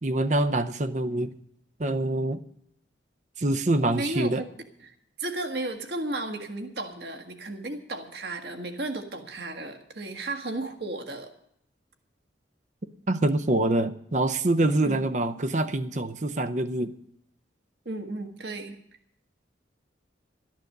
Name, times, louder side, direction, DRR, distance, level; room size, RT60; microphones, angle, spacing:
voice 1, 0.0-1.3 1.8-2.4 3.4-4.4 13.1-16.9, right 2 dB, 40° right, 11 dB, 0.7 m, -25 dB
voice 2, 3.8-4.5 4.8-11.3 14.8-15.0 17.8-18.8, right 2 dB, 60° right, 5 dB, 1.6 m, -34 dB
13.0 x 10.5 x 6.6 m, 0.73 s
head